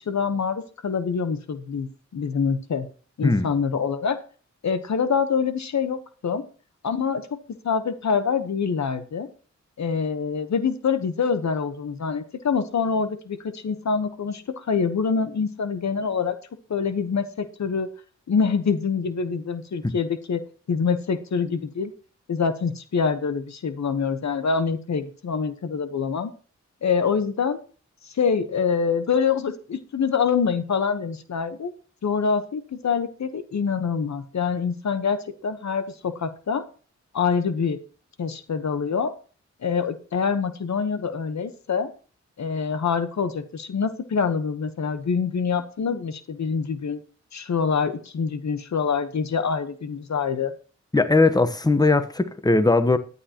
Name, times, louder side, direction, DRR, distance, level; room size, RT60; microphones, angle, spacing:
voice 1, 0.0-2.9 3.2-4.2 4.6-6.4 6.8-7.2 7.6-9.3 9.8-16.4 16.7-17.9 18.3-20.4 20.7-21.9 22.3-26.3 26.8-27.6 28.1-31.7 32.0-36.6 37.1-37.8 38.2-39.1 39.6-41.9 42.4-47.0 47.3-50.5, left 6 dB, 70° left, 1.1 m, -25 dB
voice 2, 50.9-53.0, left 3 dB, 15° left, 1.1 m, -19 dB
14.0 x 9.7 x 3.0 m
cardioid pair, 60°, 29 cm